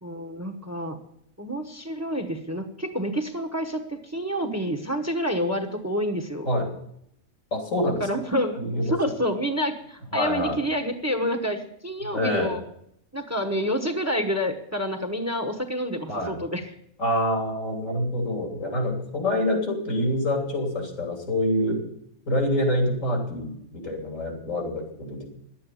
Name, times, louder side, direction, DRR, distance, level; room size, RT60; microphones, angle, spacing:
voice 1, 0.0-1.0 1.4-6.5 8.0-12.6 13.1-16.6, equal, 15° right, 7 dB, 1.0 m, -28 dB
voice 2, 7.5-8.0 8.6-9.0 10.1-10.6 12.1-12.5 16.1-16.3 17.0-21.8 22.3-25.3, left 1 dB, 85° left, 2 dB, 3.6 m, -26 dB
11.0 x 8.5 x 9.2 m, 0.74 s
omnidirectional pair, 1.3 m